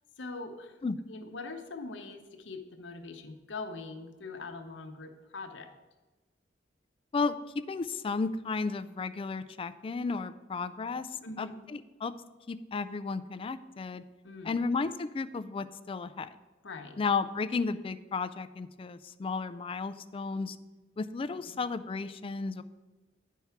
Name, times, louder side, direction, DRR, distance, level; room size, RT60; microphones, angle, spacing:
voice 1, 0.2-0.8 1.1-5.7 11.2-11.5 14.2-14.6 16.6-17.0 21.3-21.6, left 3 dB, 85° left, 5 dB, 0.8 m, -42 dB
voice 2, 7.7-12.1 12.5-14.0 14.4-16.3 17.0-20.6 21.0-22.6, left 4 dB, 30° left, 13 dB, 0.3 m, -33 dB
9.4 x 4.6 x 5.7 m, 1.2 s
head